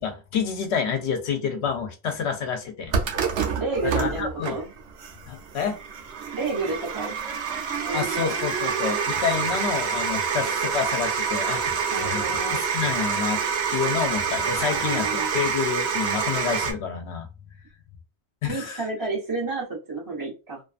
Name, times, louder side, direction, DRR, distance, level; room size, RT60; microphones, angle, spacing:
voice 1, 0.0-2.9 3.8-4.6 5.3-5.8 7.9-13.4 13.7-17.3 18.4-18.8, left 6 dB, 80° left, 5 dB, 0.9 m, -28 dB
sound 1, 2.9-16.7, right 6 dB, 80° right, 0.9 m, -27 dB
voice 2, 3.6-4.7 6.3-7.2 7.8-8.3 11.9-12.6 14.5-15.3 18.4-20.6, right 3 dB, 20° right, -4 dB, 1.1 m, -30 dB
2.5 x 2.4 x 2.4 m, 0.30 s
omnidirectional pair, 1.1 m